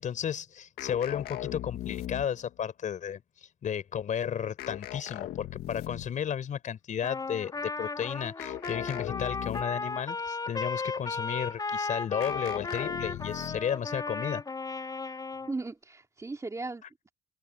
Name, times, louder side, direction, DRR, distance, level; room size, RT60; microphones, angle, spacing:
voice 1, 0.0-14.4, left 8 dB, 50° left, 4.6 m, -33 dB
sound 1, 0.8-2.5 4.6-6.2 8.4-9.9 12.2-13.8, left 13 dB, 75° left, 1.6 m, -38 dB
Trumpet, 7.0-15.5, left 4 dB, 25° left, 5.0 m, -35 dB
voice 2, 15.4-17.1, right 3 dB, 20° right, 3.2 m, -37 dB
cardioid pair, 110°, 17 cm